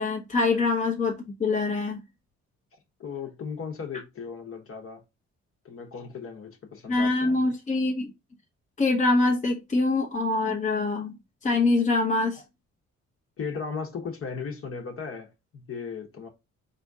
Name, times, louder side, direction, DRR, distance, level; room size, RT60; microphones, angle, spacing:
voice 1, 0.0-2.0 6.9-8.1 8.8-11.1 11.4-12.4, left 3 dB, 25° left, 0.9 m, -24 dB
voice 2, 3.0-5.0 5.6-7.5 13.4-16.3, left 5 dB, 45° left, 1.2 m, -36 dB
4.2 x 2.8 x 3.5 m
cardioid pair, 90°, 30 cm